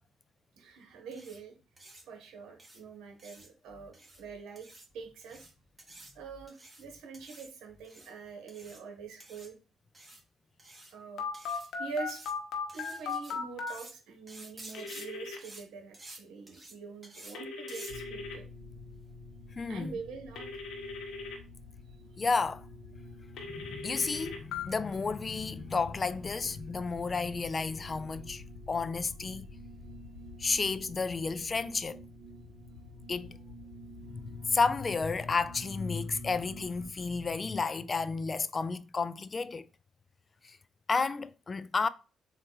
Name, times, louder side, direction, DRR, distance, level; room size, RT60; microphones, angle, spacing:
voice 1, 0.6-1.6 2.1-5.5 6.1-9.6 10.9-11.2 11.8-12.2 12.7-18.5 19.7-20.5, right 5 dB, 85° right, 1.1 m, -44 dB
sound 1, 1.1-1.4 1.8-2.0 2.6-2.8 3.2-3.5 3.9-4.2 4.6-4.8 5.2-5.5 5.8-6.1 6.5-6.8 7.1-7.5 7.8-8.1 8.5-8.8 9.2-9.5 9.9-10.2 10.6-10.9 11.3-11.7 12.1-12.3 12.7-13.3 13.7-13.9 14.3-15.0 15.4-15.6 15.9-16.2 16.5-16.7 17.0-17.3 17.7-17.9, right 2 dB, 20° right, 1.5 m, -50 dB
Telephone, 11.2-13.7 14.7-15.4 17.3-18.4 20.4-21.4 23.4-24.6, left 5 dB, 75° left, 0.9 m, -37 dB
sound 2, 17.9-36.9, left 2 dB, 65° right, 2.2 m, -48 dB
voice 2, 19.6-19.9 22.2-22.6 23.5-29.5 30.4-32.0 33.1-33.3 34.1-39.6 40.4-40.6 40.9-41.9, left 4 dB, 35° left, 0.3 m, -32 dB
3.9 x 2.6 x 3.8 m
cardioid pair, 90°, 0 cm